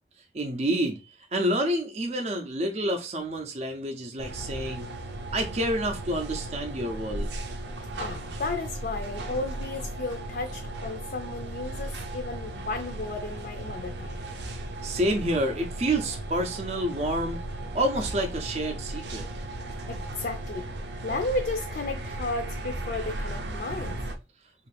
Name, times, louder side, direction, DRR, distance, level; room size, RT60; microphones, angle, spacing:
voice 1, 0.3-4.9 5.3-7.3 14.8-17.4 17.7-19.3, right 1 dB, 40° right, 0.5 m, -28 dB
sound 1, 4.2-24.2, right 1 dB, 80° right, 0.6 m, -36 dB
voice 2, 8.0-14.2 19.9-20.7 21.0-24.0, left 2 dB, 55° left, 0.4 m, -33 dB
3.3 x 2.5 x 3.2 m
head